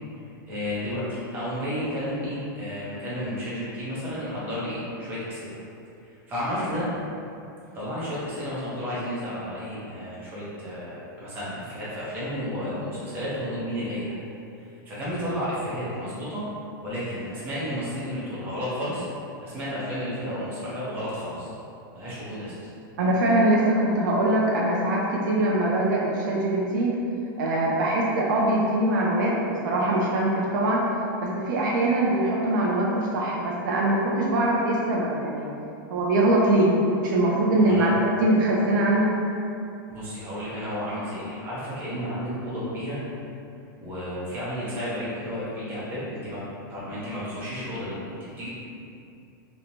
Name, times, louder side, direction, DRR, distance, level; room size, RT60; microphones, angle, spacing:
voice 1, 0.5-5.6 6.0-6.9 7.7-14.1 14.6-16.4 16.8-19.1 19.4-21.5 21.9-22.7 37.5-38.0 39.9-43.0 43.8-46.4 46.7-48.5, equal, 15° right, -9 dB, 0.7 m, -32 dB
voice 2, 23.0-27.0 27.4-30.8 31.2-35.5 35.9-36.7 37.0-37.9 38.2-39.1, right 1 dB, 65° right, -4 dB, 0.4 m, -22 dB
2.9 x 2.1 x 2.5 m, 2.7 s
supercardioid pair, 165°, 11 cm